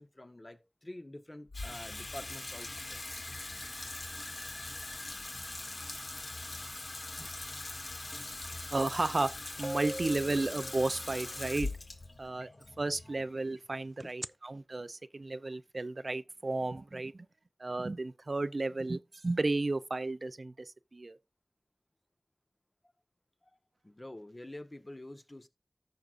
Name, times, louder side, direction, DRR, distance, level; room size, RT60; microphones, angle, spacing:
voice 1, 0.0-3.0 8.2-8.3 8.6-8.7 14.0-14.3 23.4-23.6 23.8-25.5, left 1 dB, 40° left, 1.2 m, -48 dB
Water tap faucet / Sink (filling or washing), 1.5-13.9, left 2 dB, 85° left, 1.5 m, -42 dB
voice 2, 8.7-9.3 9.6-11.7 12.2-12.5 12.8-17.3 17.6-21.2, right 2 dB, 75° right, 0.5 m, -33 dB
sound 1, 9.1-9.2 9.6-11.4 14.0-14.3, right 1 dB, 20° right, 0.4 m, -41 dB
14.5 x 6.3 x 2.6 m
wide cardioid pair, 45°, 0 cm